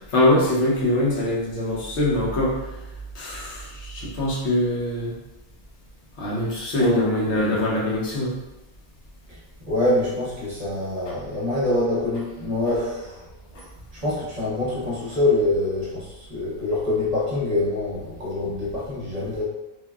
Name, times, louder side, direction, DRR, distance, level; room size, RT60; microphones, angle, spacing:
voice 1, 0.1-2.7 3.1-5.1 6.2-8.3 11.1-11.2 13.5-13.6, left 1 dB, 85° left, -4 dB, 1.1 m, -23 dB
voice 2, 6.8-7.6 9.3-13.3 13.9-19.4, left 2 dB, 40° right, -7 dB, 0.8 m, -25 dB
3.2 x 2.2 x 2.3 m, 0.97 s
omnidirectional pair, 1.1 m